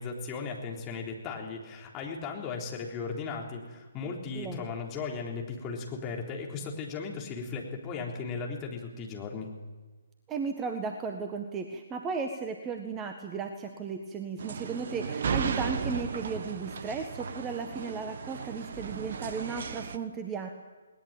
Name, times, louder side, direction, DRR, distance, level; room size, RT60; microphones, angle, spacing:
voice 1, 0.0-9.5, left 5 dB, 20° left, 0 dB, 3.8 m, -36 dB
voice 2, 10.3-20.5, right 5 dB, 15° right, 5 dB, 1.5 m, -35 dB
sound 1, 14.4-20.0, right 6 dB, 50° right, 1.2 m, -35 dB
20.0 x 19.5 x 9.0 m, 1.3 s
figure-of-eight pair, 140°, 0 cm